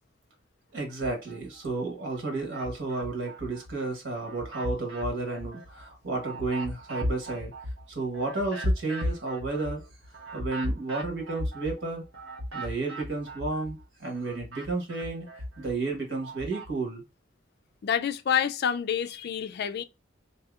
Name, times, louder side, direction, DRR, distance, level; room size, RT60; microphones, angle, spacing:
voice 1, 0.7-7.5 7.9-9.8 10.1-12.0 12.5-17.0, right 3 dB, 65° right, 1.3 m, -32 dB
sound 1, 0.9-1.7 2.1-3.7 4.1-13.8 14.1-16.7, equal, 85° right, 1.1 m, -36 dB
voice 2, 17.8-19.8, left 8 dB, 55° left, 0.4 m, -28 dB
2.8 x 2.7 x 3.4 m
head